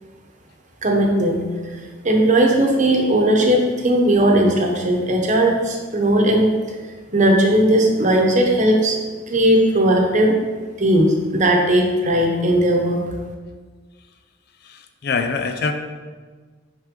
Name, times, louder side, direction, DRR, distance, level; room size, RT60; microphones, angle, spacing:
voice 1, 0.8-1.4 1.7-1.8 2.0-6.5 7.1-9.0 9.3-10.4 10.8-13.0, right 1 dB, 40° right, 1 dB, 1.0 m, -17 dB
voice 2, 14.6-15.7, left 4 dB, 60° left, 7 dB, 0.5 m, -24 dB
6.0 x 5.7 x 3.7 m, 1.4 s
head